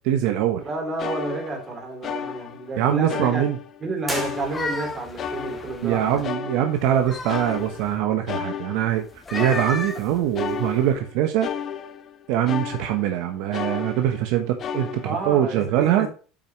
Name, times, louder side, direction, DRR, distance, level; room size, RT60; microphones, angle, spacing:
voice 1, 0.0-0.6 2.8-3.6 5.8-9.0 9.3-11.5 12.3-16.1, right 11 dB, 70° right, 1.1 m, -23 dB
sound 1, 0.6-0.7 1.0-2.8 3.1-3.8 4.1-7.0 7.3-13.2 13.5-14.3 14.6-15.3, left 7 dB, 35° left, 1.0 m, -33 dB
voice 2, 0.6-3.4 3.8-6.2 15.0-16.1, right 3 dB, 25° right, 3.7 m, -30 dB
sound 2, 4.0-5.1, equal, 5° right, 2.2 m, -34 dB
sound 3, 4.2-6.3 6.8-8.0 9.1-10.9, left 3 dB, 15° left, 1.3 m, -35 dB
8.4 x 6.0 x 3.1 m
cardioid pair, 135°, 0 cm